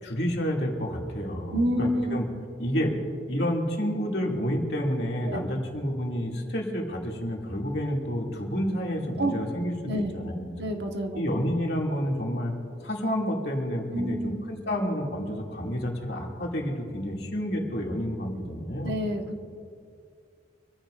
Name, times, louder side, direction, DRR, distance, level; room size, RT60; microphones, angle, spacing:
voice 1, 0.0-2.2 2.6-2.9 3.3-10.5 11.1-12.5 12.8-18.9, equal, 60° left, -2 dB, 2.6 m, -29 dB
voice 2, 1.5-2.2 5.3-5.4 9.2-9.3 9.8-10.1 10.6-11.2 13.9-14.4 18.8-19.4, equal, 65° right, 3 dB, 1.5 m, -28 dB
26.0 x 14.5 x 2.6 m, 2.3 s
head